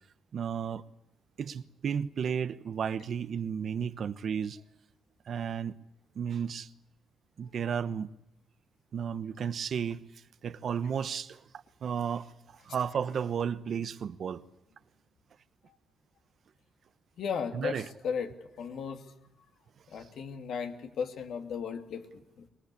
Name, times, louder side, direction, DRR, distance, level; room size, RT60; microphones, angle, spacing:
voice 1, 0.3-0.8 1.4-4.6 5.3-5.8 6.1-6.7 7.4-8.1 8.9-10.0 10.4-11.4 11.8-14.4 17.5-17.9 20.0-20.1, right 7 dB, 60° right, 1.0 m, -33 dB
voice 2, 17.2-19.0 19.9-22.5, left 6 dB, 70° left, 2.6 m, -36 dB
24.0 x 19.5 x 8.4 m
cardioid pair, 90°, 0 cm